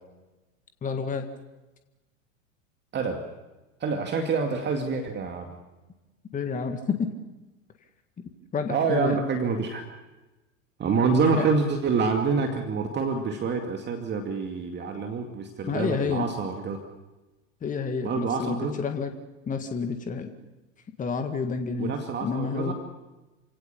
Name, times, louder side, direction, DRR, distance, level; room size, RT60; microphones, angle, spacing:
voice 1, 0.8-1.3 6.3-7.1 8.5-9.2 11.4-11.5 15.6-16.3 17.6-19.1 19.5-20.3 21.0-21.9 22.2-22.7, left 5 dB, 20° left, 6 dB, 1.8 m, -29 dB
voice 2, 2.9-3.3 3.8-5.6 8.7-9.8 10.8-16.8 18.0-18.7 21.8-22.7, right 4 dB, 25° right, 4 dB, 2.3 m, -27 dB
28.5 x 17.5 x 7.0 m, 1.1 s
figure-of-eight pair, 85°, 40 cm